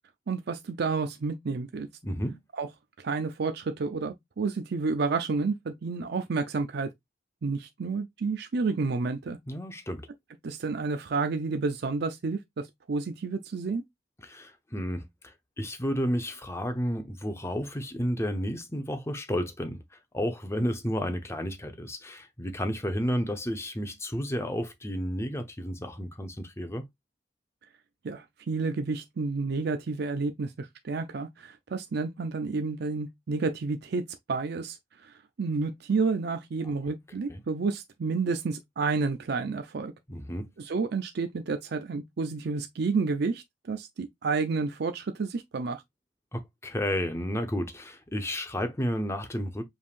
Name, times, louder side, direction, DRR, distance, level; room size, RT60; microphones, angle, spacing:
voice 1, 0.3-1.9 2.5-2.7 3.0-6.9 7.4-9.4 10.4-12.4 12.9-13.8 28.0-34.8 35.0-35.1 35.4-39.9 40.6-45.8, right 4 dB, 60° right, 0.5 m, -30 dB
voice 2, 2.0-2.4 9.5-10.1 14.2-26.8 37.3-37.4 40.1-40.5 46.3-49.6, equal, 15° left, 0.8 m, -32 dB
5.3 x 3.4 x 2.5 m
head